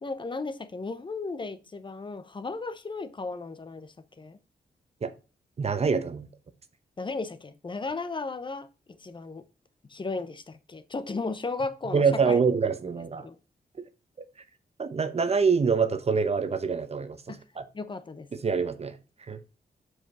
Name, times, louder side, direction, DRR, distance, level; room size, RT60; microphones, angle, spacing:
voice 1, 0.0-4.4 7.0-9.5 9.9-12.4 13.2-13.4 17.3-17.4 17.7-18.3, left 3 dB, 30° left, 0.8 m, -35 dB
voice 2, 5.6-6.3 11.9-13.3 14.8-17.7 18.3-19.0 19.3-19.4, right 5 dB, 40° right, 0.8 m, -25 dB
7.5 x 4.9 x 5.5 m
wide cardioid pair, 120°, 16 cm